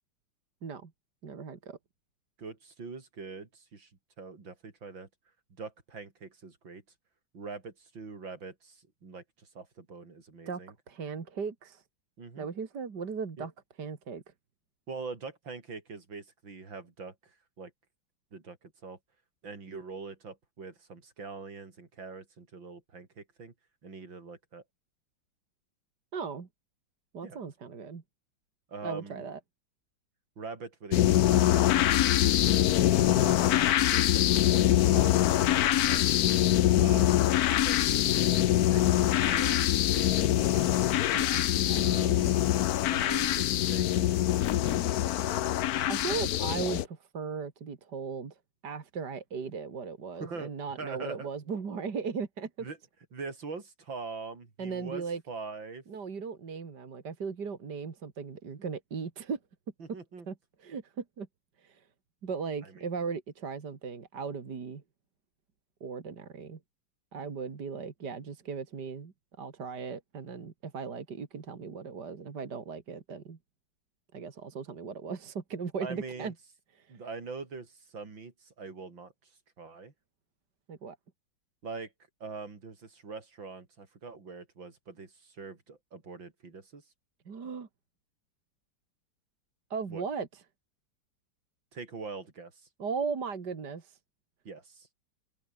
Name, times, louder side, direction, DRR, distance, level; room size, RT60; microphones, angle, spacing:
voice 1, 0.6-0.9 1.2-1.8 10.5-10.6 10.9-11.8 12.4-13.5 13.8-14.2 26.1-26.5 27.1-28.0 28.8-29.4 41.1-42.3 45.8-48.4 48.6-52.7 54.6-55.2 55.9-59.4 60.3-61.3 61.6-61.8 62.2-64.8 65.8-66.6 67.1-73.4 74.1-76.3 76.8-76.9 80.7-81.0 87.3-87.7 89.7-90.4 92.8-94.0, right 5 dB, 60° right, 2.8 m, -37 dB
voice 2, 2.4-3.9 4.2-5.1 5.5-6.8 7.3-10.7 12.2-12.5 13.4-13.5 14.9-17.7 18.3-19.0 19.4-23.5 23.8-24.6 27.2-27.4 28.7-29.3 30.4-32.1 33.1-35.4 35.7-36.1 36.8-38.8 39.1-40.7 41.8-42.3 42.9-45.2 50.1-50.5 50.8-51.3 52.6-52.8 53.1-55.8 59.8-60.3 62.6-62.9 75.8-76.3 76.9-79.1 79.6-79.9 81.6-81.9 82.2-86.8 89.9-90.1 91.7-92.7 94.4-94.9, right 4 dB, 80° right, 4.4 m, -43 dB
sound 1, 30.9-46.9, left 13 dB, 65° left, 1.0 m, -24 dB
open air
omnidirectional pair, 2.1 m